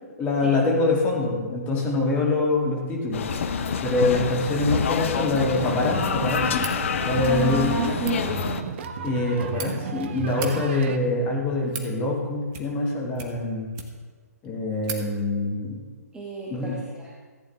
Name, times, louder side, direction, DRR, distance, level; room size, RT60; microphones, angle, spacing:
voice 1, 0.2-3.2 3.8-6.6 7.0-7.8 9.0-13.7 14.4-15.8 16.5-16.8, left 2 dB, 20° left, -2 dB, 2.3 m, -24 dB
sound 1, 3.1-8.6, left 7 dB, 50° left, 0.7 m, -27 dB
sound 2, 5.3-11.0, right 5 dB, 45° right, 0.8 m, -34 dB
sound 3, 6.5-6.8 7.9-8.2 9.1-9.7 10.3-10.5 11.3-11.9 12.5-12.9 13.1-14.1 14.4-14.5 14.8-15.0, right 6 dB, 25° right, 1.1 m, -37 dB
voice 2, 7.2-8.5 16.1-17.1, right 5 dB, 10° right, -4 dB, 1.1 m, -31 dB
14.5 x 8.6 x 3.5 m, 1.4 s
figure-of-eight pair, 130°, 9 cm